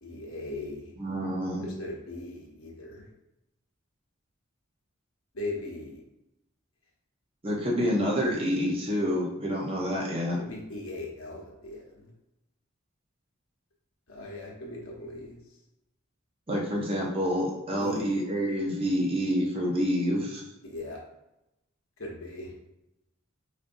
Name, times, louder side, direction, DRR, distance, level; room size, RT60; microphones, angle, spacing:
voice 1, 0.0-0.9 1.6-3.1 5.3-6.0 10.4-12.1 14.1-15.4 17.8-18.1 20.6-21.0 22.0-22.5, left 2 dB, 75° left, -2 dB, 1.0 m, -39 dB
voice 2, 1.0-1.7 7.4-10.4 16.5-20.4, equal, 25° right, -3 dB, 0.7 m, -28 dB
5.1 x 2.6 x 2.6 m, 0.90 s
head